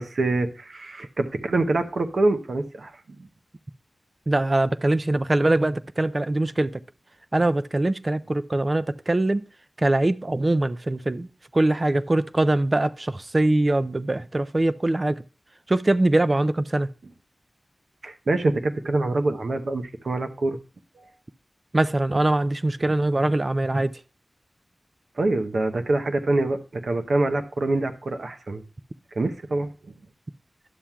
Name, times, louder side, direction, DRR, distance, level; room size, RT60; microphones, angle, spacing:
voice 1, 0.0-3.3 18.0-20.6 21.0-21.1 25.2-28.6 29.1-29.7, right 2 dB, 75° right, 0.8 m, -25 dB
voice 2, 4.3-6.8 7.3-9.4 9.8-11.3 11.5-15.2 15.7-16.9 21.7-23.9, right 2 dB, 35° right, 0.3 m, -22 dB
11.5 x 7.3 x 2.2 m
wide cardioid pair, 85°, 0 cm